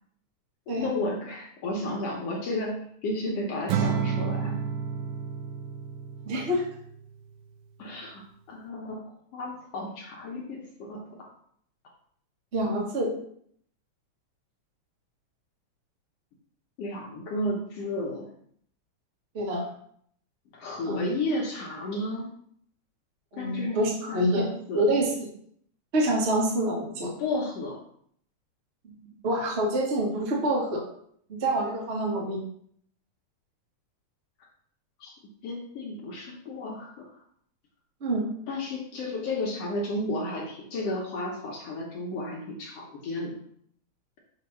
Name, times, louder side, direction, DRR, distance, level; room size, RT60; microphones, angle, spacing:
voice 1, 0.8-4.6 6.5-6.6 7.8-9.0 9.3-11.3 16.8-18.3 20.5-22.3 23.3-23.8 24.1-24.8 27.2-27.8 35.0-35.1 35.4-37.1 38.5-43.3, left 2 dB, 65° left, -2 dB, 1.7 m, -33 dB
Acoustic guitar / Strum, 3.7-7.0, right 6 dB, 85° right, 2.0 m, -30 dB
voice 2, 6.2-6.6 12.5-13.1 19.3-19.7 20.9-21.0 23.3-24.5 24.7-25.1 25.9-27.1 29.2-30.8 31.3-32.4 38.0-38.3, right 1 dB, 65° right, -2 dB, 0.6 m, -26 dB
6.0 x 2.9 x 5.5 m, 0.64 s
omnidirectional pair, 3.6 m